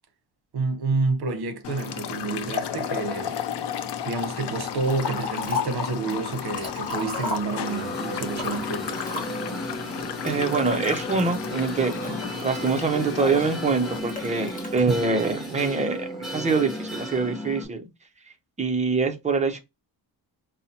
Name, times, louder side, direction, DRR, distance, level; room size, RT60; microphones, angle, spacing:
voice 1, 0.5-3.4 4.0-8.9 14.9-15.0, right 3 dB, 55° right, 0.9 m, -29 dB
sound 1, 1.6-14.0, left 9 dB, 65° left, 0.6 m, -33 dB
Liquid, 4.8-5.9 6.3-7.9 8.3-9.6 10.3-11.0 11.6-13.3 14.1-14.8, left 3 dB, 20° left, 1.4 m, -34 dB
sound 2, 7.6-17.6, right 1 dB, ahead, 1.5 m, -35 dB
voice 2, 10.2-17.9 18.6-19.6, right 4 dB, 15° right, 0.5 m, -25 dB
5.3 x 2.0 x 2.8 m
wide cardioid pair, 150°, 45 cm